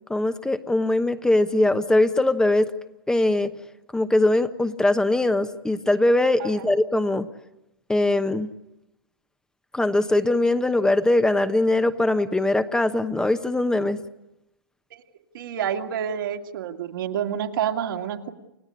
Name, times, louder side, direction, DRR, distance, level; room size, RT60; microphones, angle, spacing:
voice 1, 0.1-2.7 3.1-3.5 3.9-7.3 7.9-8.5 9.7-14.0, left 2 dB, 5° left, 10 dB, 1.1 m, -21 dB
voice 2, 15.3-18.3, right 9 dB, 65° right, 4 dB, 2.4 m, -28 dB
29.5 x 16.0 x 9.9 m, 0.93 s
hypercardioid pair, 115°, 12 cm